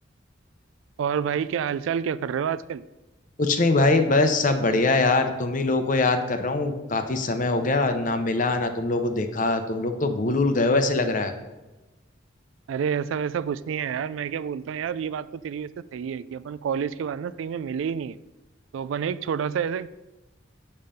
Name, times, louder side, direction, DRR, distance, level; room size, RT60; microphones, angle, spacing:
voice 1, 1.0-2.8 12.7-18.2 18.7-19.9, right 7 dB, 75° right, 15 dB, 0.3 m, -28 dB
voice 2, 3.4-11.3, left 2 dB, 40° left, 7 dB, 0.7 m, -23 dB
7.5 x 5.6 x 5.1 m, 1.1 s
head